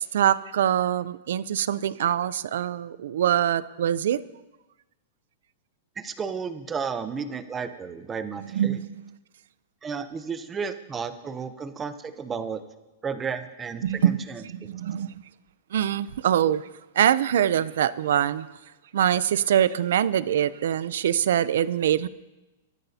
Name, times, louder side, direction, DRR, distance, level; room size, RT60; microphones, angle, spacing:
voice 1, 0.0-4.2 8.4-9.1 13.8-15.1 15.7-16.6 17.0-18.5 18.9-22.1, right 10 dB, 65° right, 17 dB, 0.5 m, -24 dB
voice 2, 6.0-8.7 9.8-12.6 13.0-14.4, right 6 dB, 10° right, 10 dB, 0.6 m, -33 dB
22.0 x 13.0 x 2.8 m, 1.1 s
supercardioid pair, 170°, 0 cm